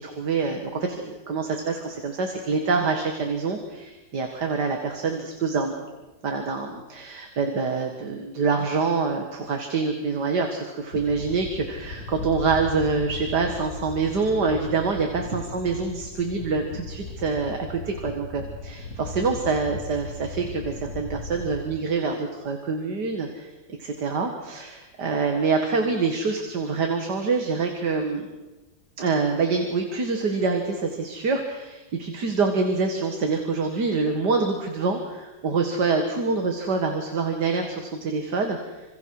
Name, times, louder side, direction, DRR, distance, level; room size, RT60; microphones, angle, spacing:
voice 1, 0.0-5.8 6.2-23.5 23.8-28.3 29.0-38.8, right 4 dB, 60° right, 4 dB, 2.5 m, -26 dB
sound 1, 10.9-21.6, left 3 dB, 50° left, 2.3 m, -37 dB
28.0 x 26.5 x 4.9 m, 1.1 s
omnidirectional pair, 2.1 m